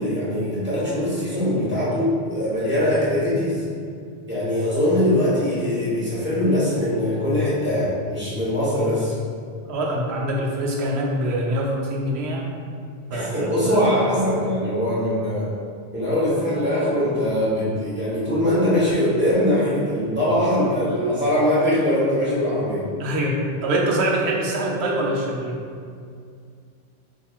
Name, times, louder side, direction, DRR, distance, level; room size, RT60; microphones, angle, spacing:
voice 1, 0.0-3.7 4.3-9.2 13.1-15.5 15.9-22.9, left 1 dB, 10° right, -10 dB, 0.9 m, -22 dB
voice 2, 9.6-12.5 13.1-13.8 23.0-25.6, right 1 dB, 85° right, -2 dB, 0.9 m, -24 dB
4.5 x 3.0 x 2.3 m, 2.3 s
omnidirectional pair, 1.1 m